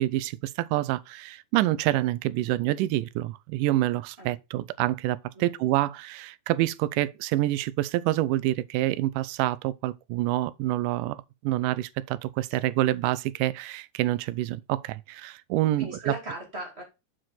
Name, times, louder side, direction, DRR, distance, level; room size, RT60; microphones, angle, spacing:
voice 1, 0.0-16.1, right 15 dB, 85° right, 2.1 m, -27 dB
voice 2, 5.3-5.7 12.6-12.7 15.8-16.8, right 1 dB, 20° right, 2.6 m, -38 dB
7.6 x 4.9 x 4.2 m
omnidirectional pair, 3.7 m